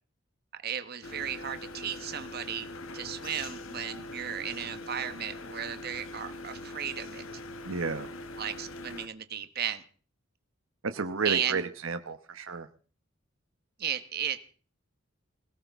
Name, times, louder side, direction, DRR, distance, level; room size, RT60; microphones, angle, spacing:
voice 1, 0.6-2.7 2.9-7.2 8.4-9.8 11.2-11.6 13.8-14.4, right 9 dB, 50° right, 9 dB, 1.1 m, -34 dB
sound 1, 1.0-9.1, left 2 dB, 85° left, 1.1 m, -42 dB
voice 2, 7.6-8.1 10.8-12.7, right 4 dB, 85° right, 9 dB, 1.0 m, -32 dB
21.0 x 17.5 x 3.6 m, 0.40 s
head